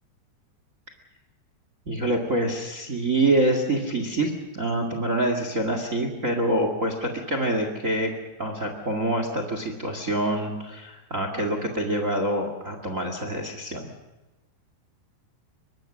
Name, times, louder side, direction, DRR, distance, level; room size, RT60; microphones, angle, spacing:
voice 1, 1.8-8.1 8.4-13.9, right 1 dB, 65° right, 5 dB, 0.8 m, -26 dB
24.0 x 21.5 x 6.4 m, 1.0 s
omnidirectional pair, 5.3 m